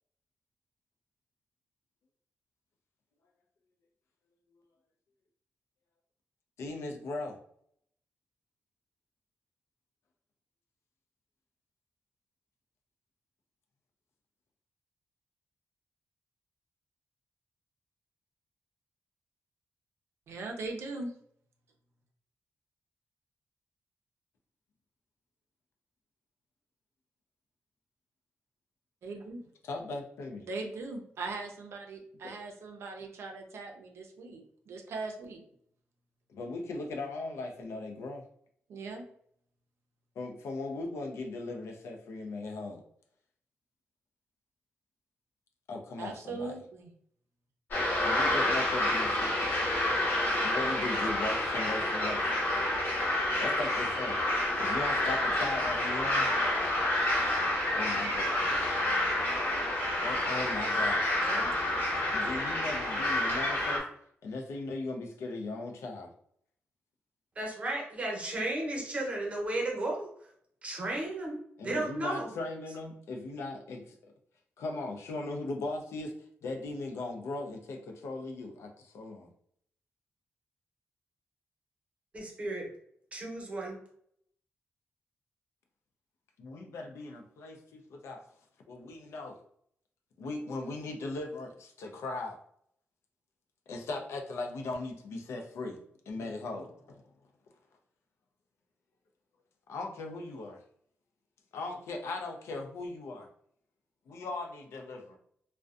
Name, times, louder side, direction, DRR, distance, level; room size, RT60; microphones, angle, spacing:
voice 1, 6.6-7.4 29.6-30.5 32.2-32.3 36.3-38.2 40.2-42.8 45.7-46.5 48.0-49.5 50.4-52.3 53.4-54.2 54.5-56.3 57.7-58.4 60.0-61.1 62.1-63.8 64.2-66.1 71.6-74.1 74.6-76.1 76.4-79.3 86.4-88.2 88.7-89.4 90.2-92.4 93.7-95.8 96.1-97.0 99.7-100.6 101.5-103.3 104.1-105.2, left 2 dB, 85° left, 3 dB, 0.4 m, -38 dB
voice 2, 20.3-21.1 29.0-29.5 30.4-35.4 38.7-39.0 46.0-46.9 61.2-61.6, right 3 dB, 75° right, 3 dB, 0.5 m, -40 dB
sound 1, 47.7-63.8, left 1 dB, 50° left, 0.8 m, -29 dB
voice 3, 67.4-70.1 70.6-71.4 71.6-72.3 82.1-82.6 83.1-83.8, right 2 dB, 30° right, -1 dB, 0.7 m, -34 dB
2.5 x 2.1 x 2.4 m, 0.66 s
wide cardioid pair, 145°, 4 cm